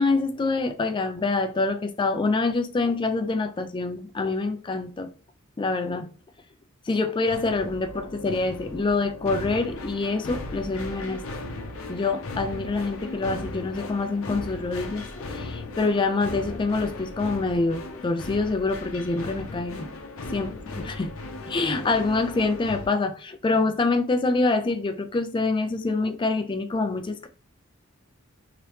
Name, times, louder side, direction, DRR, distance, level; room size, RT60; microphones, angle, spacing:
voice 1, 0.0-5.1 5.6-6.1 6.9-11.4 11.9-19.9 20.3-20.5 21.0-21.1 21.5-27.3, left 3 dB, 25° left, 0.3 m, -26 dB
sound 1, 7.3-22.9, left 2 dB, 80° left, 0.6 m, -37 dB
2.9 x 2.9 x 3.2 m
head